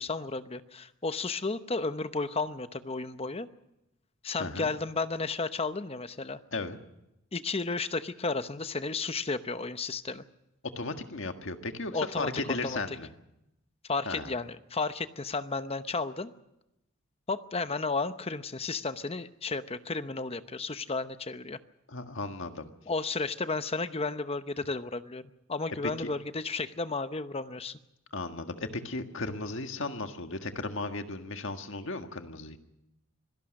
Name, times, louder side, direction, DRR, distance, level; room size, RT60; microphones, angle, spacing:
voice 1, 0.0-3.5 4.2-6.4 7.3-10.2 11.9-12.8 13.9-16.3 17.3-21.6 22.9-25.2 25.5-27.8, left 3 dB, 30° left, 11 dB, 0.8 m, -33 dB
voice 2, 4.4-4.7 6.5-6.8 10.7-13.1 14.0-14.3 21.9-22.7 26.0-26.1 28.1-32.6, left 3 dB, 60° left, 6 dB, 1.7 m, -35 dB
25.5 x 17.5 x 6.5 m, 0.87 s
head